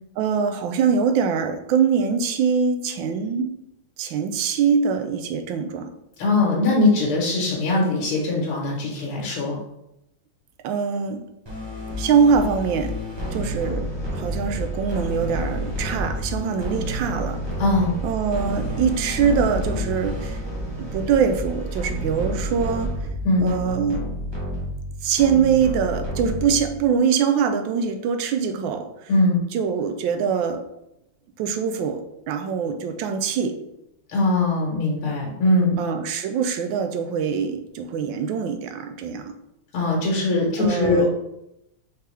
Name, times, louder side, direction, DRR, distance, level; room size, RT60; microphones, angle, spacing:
voice 1, 0.2-3.5 4.0-5.9 10.6-11.2 12.0-12.9 13.3-13.9 14.1-17.4 18.0-20.4 20.8-22.9 23.4-24.0 25.0-29.1 29.5-30.6 31.4-33.6 35.8-39.3 40.6-41.0, right 6 dB, 75° right, 7 dB, 1.2 m, -23 dB
voice 2, 6.2-9.6 17.6-18.0 23.2-23.5 29.1-29.4 34.1-35.8 39.7-41.1, left 2 dB, 85° left, -3 dB, 1.9 m, -21 dB
sound 1, 11.5-26.9, equal, 20° right, 0.7 m, -29 dB
4.4 x 3.7 x 3.2 m, 0.84 s
omnidirectional pair, 2.3 m